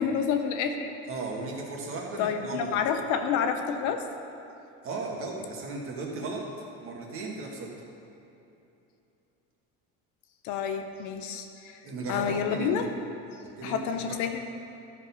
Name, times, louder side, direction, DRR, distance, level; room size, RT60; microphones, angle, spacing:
voice 1, 0.0-0.9 2.2-4.0 10.4-11.8 12.1-12.8 13.6-14.4, left 7 dB, 70° left, 6 dB, 0.8 m, -29 dB
voice 2, 1.1-2.8 4.8-6.4 6.8-7.7 11.8-12.8 13.6-13.8 14.1-14.2, right 3 dB, 45° right, -1 dB, 1.6 m, -35 dB
12.5 x 4.7 x 5.4 m, 2.8 s
cardioid pair, 150°, 31 cm